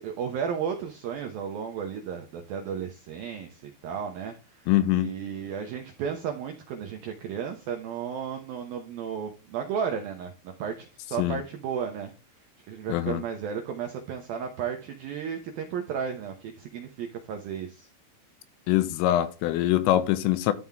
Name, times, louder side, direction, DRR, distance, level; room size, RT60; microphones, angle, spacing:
voice 1, 0.0-12.1 12.7-17.9, right 7 dB, 80° right, 2.1 m, -34 dB
voice 2, 4.7-5.1 11.2-11.4 12.9-13.2 18.7-20.5, left 14 dB, 85° left, 3.5 m, -23 dB
12.5 x 5.7 x 3.6 m
omnidirectional pair, 5.8 m